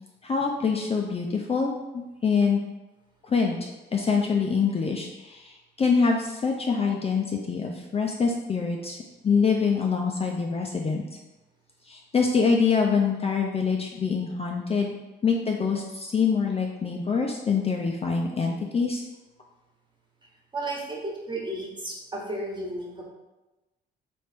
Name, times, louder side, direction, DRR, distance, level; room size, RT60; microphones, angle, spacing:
voice 1, 0.2-2.6 3.3-9.0 9.2-11.0 11.9-14.9 15.2-19.0, left 5 dB, 30° left, 1 dB, 0.5 m, -25 dB
voice 2, 20.5-23.0, right 1 dB, 25° right, -2 dB, 1.3 m, -33 dB
3.4 x 3.1 x 4.4 m, 1.0 s
cardioid pair, 90°, 20 cm